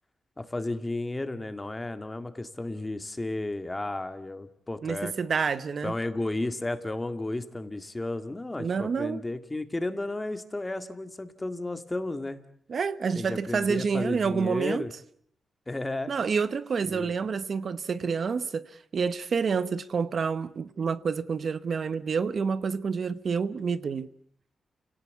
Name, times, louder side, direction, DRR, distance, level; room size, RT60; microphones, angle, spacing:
voice 1, 0.4-5.1 5.8-12.4 13.2-14.9 15.7-16.1 16.8-17.1, left 2 dB, 20° left, 2.0 m, -33 dB
voice 2, 4.8-6.0 8.6-9.2 12.7-14.8 16.1-24.1, right 5 dB, 55° right, 1.0 m, -28 dB
29.5 x 18.0 x 8.3 m
cardioid pair, 95°, 0 cm